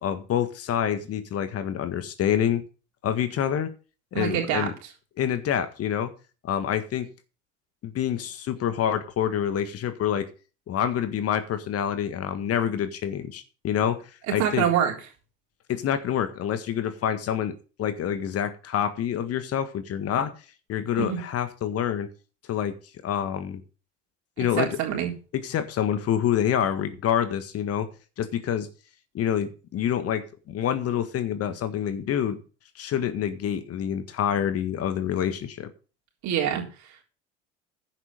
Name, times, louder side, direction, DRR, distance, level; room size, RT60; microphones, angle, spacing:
voice 1, 0.0-2.7 3.0-3.7 4.1-4.7 5.2-6.1 6.4-7.1 7.8-10.3 10.7-14.7 15.7-17.5 17.8-20.3 20.7-22.1 22.5-22.7 23.0-23.6 24.4-24.7 25.3-27.9 28.2-28.7 29.1-32.4 32.7-35.7, left 9 dB, 40° left, 10 dB, 1.7 m, -27 dB
voice 2, 4.1-4.9 14.3-14.9 21.0-21.2 24.6-25.1 36.2-37.0, right 9 dB, 50° right, 1 dB, 3.7 m, -26 dB
11.0 x 8.1 x 5.4 m, 0.35 s
figure-of-eight pair, 65°, 35 cm